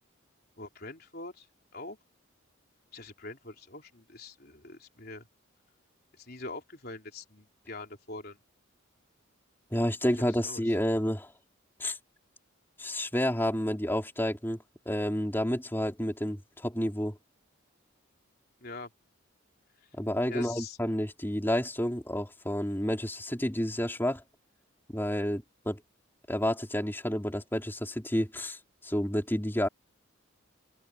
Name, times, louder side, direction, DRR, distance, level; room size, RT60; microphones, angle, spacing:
voice 1, 0.6-1.5 1.7-2.0 2.9-5.2 6.2-8.4 10.4-10.6 18.6-18.9 20.3-20.8, left 2 dB, 50° left, 4.0 m, -43 dB
voice 2, 9.7-11.3 11.8-12.0 12.8-14.6 14.9-17.2 20.0-24.2 24.9-25.8 26.3-29.7, equal, 10° left, 4.0 m, -30 dB
open air
head